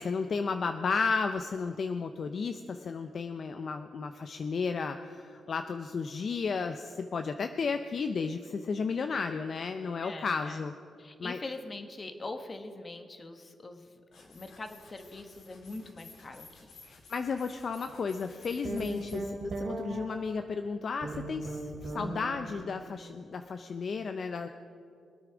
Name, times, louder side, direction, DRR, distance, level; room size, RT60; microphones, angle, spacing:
voice 1, 0.0-10.7 11.2-11.4 16.8-24.5, left 5 dB, 55° left, 8 dB, 0.6 m, -33 dB
voice 2, 10.0-10.7 11.0-16.7, left 2 dB, 35° left, 6 dB, 1.4 m, -43 dB
sound 1, 14.1-19.2, left 3 dB, 75° left, 2.9 m, -54 dB
sound 2, 18.6-20.5 21.0-22.6, right 2 dB, 65° right, 2.7 m, -37 dB
21.5 x 9.1 x 5.0 m, 2.4 s
cardioid pair, 65°, 0 cm